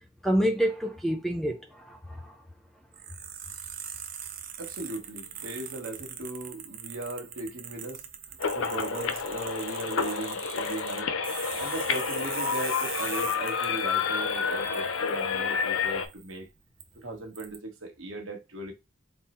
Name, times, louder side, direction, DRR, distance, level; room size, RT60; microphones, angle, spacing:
voice 1, 0.2-2.3 11.5-11.7, equal, ahead, 0.5 m, -28 dB
sound 1, 2.9-16.3 16.8-16.9 17.3-17.6, right 9 dB, 45° right, 0.6 m, -41 dB
voice 2, 4.6-8.0 8.5-11.1 11.6-16.5 16.9-18.7, right 1 dB, 75° right, 1.2 m, -38 dB
sound 2, 8.4-16.1, left 6 dB, 75° left, 0.5 m, -29 dB
3.7 x 2.0 x 4.1 m
head